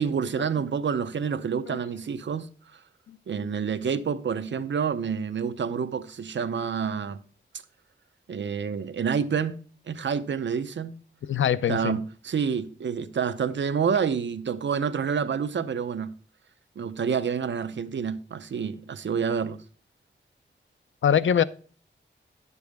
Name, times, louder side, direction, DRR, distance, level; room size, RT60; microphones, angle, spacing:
voice 1, 0.0-2.5 2.7-2.8 3.3-7.2 8.3-9.6 9.9-11.0 11.7-16.1 16.8-19.6, right 6 dB, 70° right, 0.6 m, -28 dB
voice 2, 11.3-12.0 21.0-21.4, left 9 dB, 85° left, 0.5 m, -23 dB
10.5 x 6.9 x 3.4 m
wide cardioid pair, 115°, 19 cm